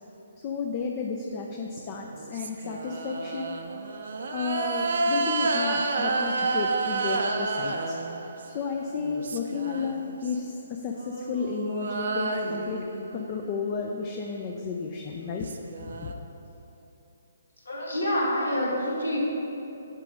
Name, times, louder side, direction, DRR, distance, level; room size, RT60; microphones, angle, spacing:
voice 1, 0.4-3.6 4.3-8.0 8.5-12.8 13.1-15.5 15.9-16.1, left 5 dB, 35° left, 1 dB, 0.5 m, -32 dB
sound 1, 1.7-8.6 9.0-10.4 10.9-13.6 14.9-15.0 15.2-16.1, right 3 dB, 65° right, 0.6 m, -30 dB
voice 2, 17.7-19.2, left 1 dB, 85° left, -3 dB, 1.8 m, -27 dB
7.3 x 5.2 x 5.1 m, 3.0 s
figure-of-eight pair, 135°, 0 cm